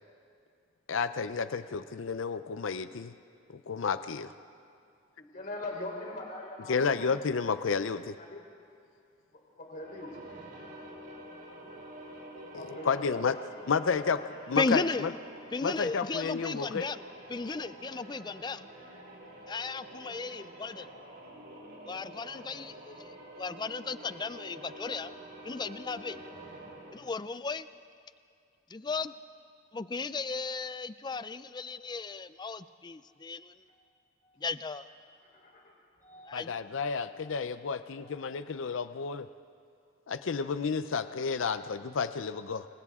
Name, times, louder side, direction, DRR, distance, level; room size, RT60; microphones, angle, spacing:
voice 1, 0.9-3.1 3.5-4.3 6.7-8.2 12.5-13.4 13.7-14.2 14.5-15.1 15.6-16.9 36.3-39.3 40.1-42.7, left 5 dB, 75° left, 12 dB, 0.5 m, -31 dB
voice 2, 5.3-7.1 8.1-8.4 9.3-10.2 12.5-14.5 19.7-19.8 33.1-33.2 33.7-33.9 34.2-34.4 35.2-35.7 36.0-36.5 37.0-37.3 38.0-38.5, left 2 dB, 45° left, -1 dB, 3.8 m, -44 dB
sound 1, 9.7-27.2, right 1 dB, 55° right, 4.7 m, -48 dB
voice 3, 14.6-15.1 15.5-17.0 17.3-18.7 19.5-20.9 21.8-25.1 25.4-26.2 26.9-27.7 28.7-29.1 29.7-33.5 34.4-34.9 36.3-36.5, left 4 dB, 20° left, 14 dB, 0.4 m, -35 dB
28.5 x 25.5 x 3.6 m, 2.3 s
head